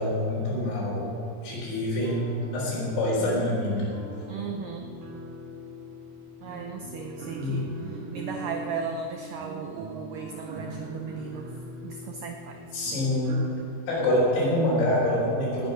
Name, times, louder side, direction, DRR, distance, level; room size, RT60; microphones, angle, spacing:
voice 1, 0.0-3.9 7.3-7.6 12.7-13.4 13.9-15.7, left 1 dB, 85° left, -7 dB, 6.2 m, -26 dB
sound 1, 2.0-13.5, right 1 dB, 55° right, 2.4 m, -41 dB
voice 2, 4.3-4.9 6.4-7.7 8.1-11.5 11.8-12.6, right 5 dB, 90° right, 3 dB, 1.8 m, -36 dB
19.5 x 9.0 x 5.2 m, 2.7 s
omnidirectional pair, 5.0 m